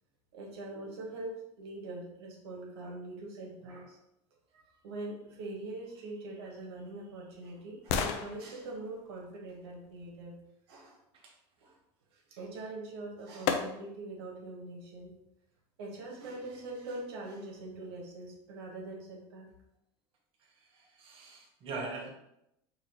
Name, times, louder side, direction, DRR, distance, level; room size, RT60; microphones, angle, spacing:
voice 1, 0.3-4.0 4.5-10.3 10.7-11.0 11.6-11.8 12.1-15.2 15.8-19.5, right 2 dB, 85° right, -1 dB, 1.2 m, -43 dB
sound 1, 6.3-10.5 12.6-12.7 13.5-14.2 14.6-14.7, left 7 dB, 65° left, 0.5 m, -37 dB
voice 2, 20.5-22.1, right 3 dB, 45° right, -1 dB, 1.0 m, -42 dB
4.7 x 2.9 x 3.0 m, 0.81 s
supercardioid pair, 110°, 13 cm